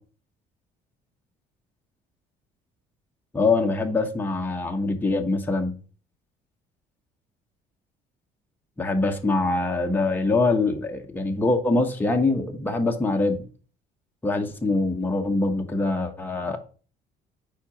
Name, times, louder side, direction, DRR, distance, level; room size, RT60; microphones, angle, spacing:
voice 1, 3.3-5.7 8.8-13.5 14.2-16.6, left 3 dB, 10° left, 1.0 m, -24 dB
4.9 x 4.4 x 5.7 m
cardioid pair, 110°, 17 cm